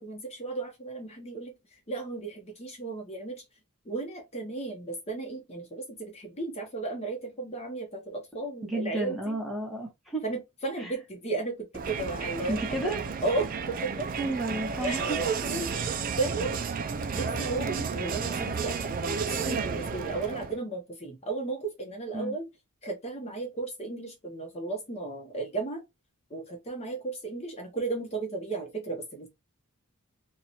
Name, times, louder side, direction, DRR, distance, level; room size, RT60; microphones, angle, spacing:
voice 1, 0.0-1.5 1.9-3.4 3.9-9.4 10.2-12.9 13.2-13.9 14.8-16.5 17.1-22.4 22.8-25.8 26.3-29.3, right 3 dB, 30° left, 0.9 m, -34 dB
voice 2, 8.6-10.2 10.8-10.9 12.5-13.0 14.2-15.2 22.1-22.4, right 1 dB, ahead, 1.0 m, -32 dB
Crowd, 11.7-20.6, right 5 dB, 40° right, 0.3 m, -32 dB
2.9 x 2.3 x 4.0 m
head